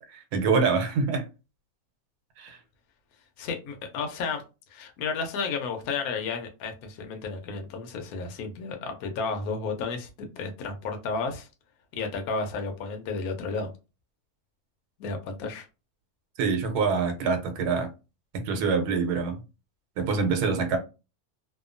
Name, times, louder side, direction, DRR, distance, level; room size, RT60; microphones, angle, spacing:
voice 1, 0.1-1.2 2.4-2.6 16.4-17.9 18.4-19.4 20.0-20.8, right 5 dB, 85° right, 1.2 m, -25 dB
voice 2, 3.4-4.4 4.7-11.5 11.9-13.7 15.0-15.7, left 4 dB, 75° left, 1.0 m, -32 dB
2.7 x 2.2 x 2.5 m
omnidirectional pair, 1.6 m